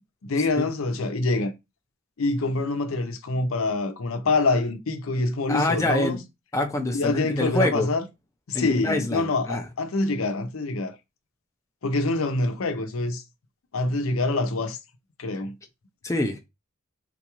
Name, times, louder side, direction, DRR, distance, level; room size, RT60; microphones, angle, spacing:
voice 1, 0.2-1.5 2.2-6.2 6.9-8.0 8.5-10.9 11.8-13.2 13.7-14.8 15.2-15.5, left 2 dB, 90° left, 0.6 m, -25 dB
voice 2, 5.5-6.2 6.5-7.9 8.5-9.6 16.0-16.4, left 1 dB, 15° left, 0.4 m, -25 dB
3.8 x 2.3 x 2.9 m
head